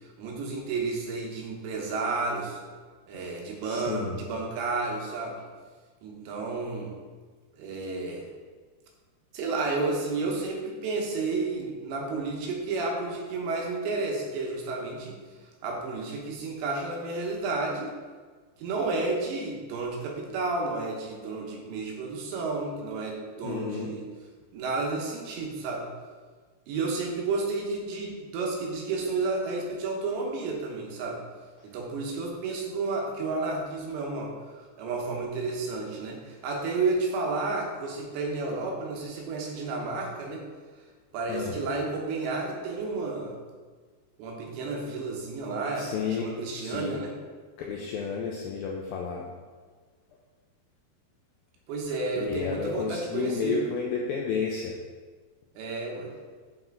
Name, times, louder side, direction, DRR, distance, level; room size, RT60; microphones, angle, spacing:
voice 1, 0.2-2.6 3.1-5.4 6.0-6.9 7.6-8.3 9.3-15.2 15.6-17.9 18.6-24.1 24.5-25.9 26.7-31.2 31.6-34.3 34.8-40.4 41.1-43.3 44.2-47.1 51.7-53.6 55.6-56.1, right 3 dB, 90° right, 0 dB, 3.5 m, -31 dB
voice 2, 3.6-4.2 23.4-23.9 41.3-41.6 45.8-47.0 47.6-49.3 52.2-54.8, left 5 dB, 85° left, 0 dB, 2.1 m, -32 dB
8.1 x 5.7 x 3.9 m, 1.5 s
omnidirectional pair, 5.0 m